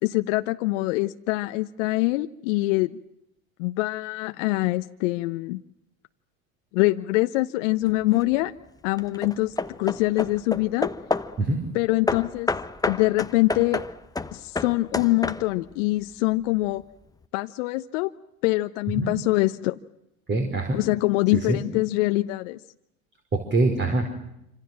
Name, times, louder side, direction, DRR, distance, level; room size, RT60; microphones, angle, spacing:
voice 1, 0.0-3.0 3.6-5.6 6.7-8.5 8.8-10.9 11.7-12.5 12.8-13.8 14.3-16.8 17.3-18.1 18.4-19.8 20.7-22.6, left 20 dB, 60° left, 9 dB, 1.0 m, -24 dB
Hammer / Wood, 7.9-8.3 9.0-11.4 12.1-15.7, left 3 dB, 10° left, 1.1 m, -30 dB
voice 2, 20.3-20.8 21.5-21.6 23.3-24.1, right 2 dB, 25° right, 5 dB, 4.9 m, -23 dB
27.0 x 26.5 x 7.6 m, 0.83 s
hypercardioid pair, 85°, 42 cm